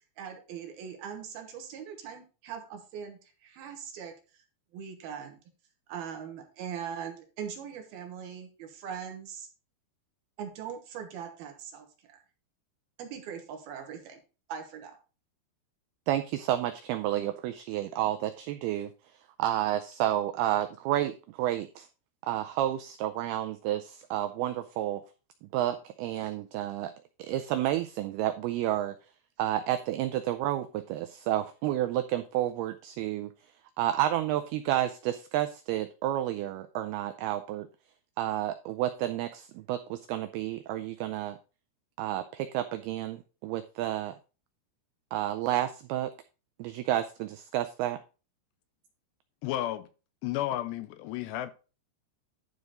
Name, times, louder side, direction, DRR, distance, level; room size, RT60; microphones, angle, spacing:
voice 1, 0.2-4.4 4.7-5.4 5.9-9.5 10.4-12.2 13.0-14.2 14.5-15.0, right 7 dB, 70° right, 2.8 m, -41 dB
voice 2, 16.1-18.9 19.4-21.9 22.2-25.0 25.4-26.9 27.2-28.9 29.4-33.3 33.8-37.7 38.2-41.4 42.0-44.1 45.1-46.1 46.6-48.0, right 13 dB, 90° right, 2.2 m, -30 dB
voice 3, 49.4-49.9 50.2-51.5, left 13 dB, 80° left, 2.7 m, -32 dB
11.5 x 4.8 x 4.0 m
omnidirectional pair, 5.2 m